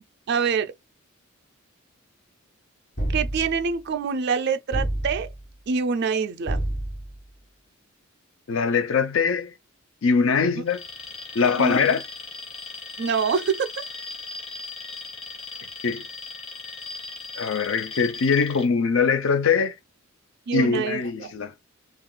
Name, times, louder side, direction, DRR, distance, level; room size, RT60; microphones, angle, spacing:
voice 1, 0.3-0.7 3.1-5.3 5.7-6.6 11.6-11.8 13.0-13.7 20.5-21.3, right 5 dB, 55° right, 0.4 m, -25 dB
sound 1, 3.0-3.7 4.7-5.5 6.5-7.2, right 1 dB, 45° left, 1.3 m, -28 dB
voice 2, 8.5-9.5 10.0-10.8 11.3-12.0 15.8-16.0 17.4-19.7 20.5-21.5, left 5 dB, 70° left, 0.5 m, -22 dB
Alarm, 10.7-18.7, left 3 dB, 30° left, 0.7 m, -38 dB
2.4 x 2.3 x 3.7 m
head